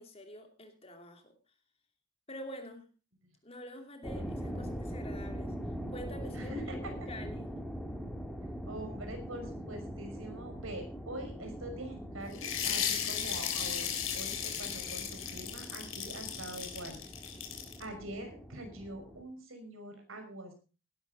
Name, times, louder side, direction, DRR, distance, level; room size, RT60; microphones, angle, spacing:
voice 1, 0.0-1.3 2.3-2.9 3.4-5.5 5.9-7.5, equal, 30° left, 5 dB, 2.8 m, -46 dB
sound 1, 4.0-19.2, equal, ahead, 2.1 m, -42 dB
voice 2, 4.1-4.6 6.3-6.6 8.7-17.0 17.8-20.5, right 1 dB, 75° right, 5 dB, 5.7 m, -44 dB
sound 2, 12.3-17.8, left 8 dB, 75° left, 3.6 m, -36 dB
18.0 x 11.5 x 3.9 m, 0.34 s
head